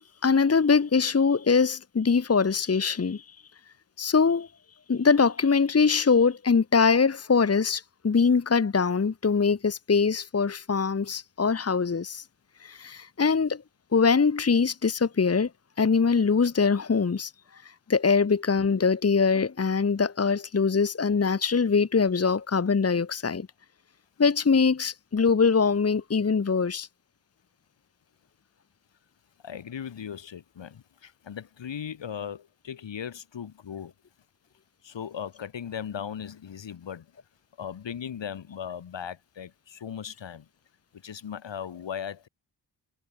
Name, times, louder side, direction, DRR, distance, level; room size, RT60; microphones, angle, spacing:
voice 1, 0.0-3.4 4.0-4.5 4.9-12.2 12.6-13.6 13.9-15.5 15.8-23.5 24.2-26.9, left 5 dB, 35° left, 1.6 m, -23 dB
voice 2, 29.4-33.9 34.8-37.1 37.6-40.5 40.9-42.3, left 8 dB, 80° left, 6.9 m, -38 dB
wide cardioid pair, 100°, 43 cm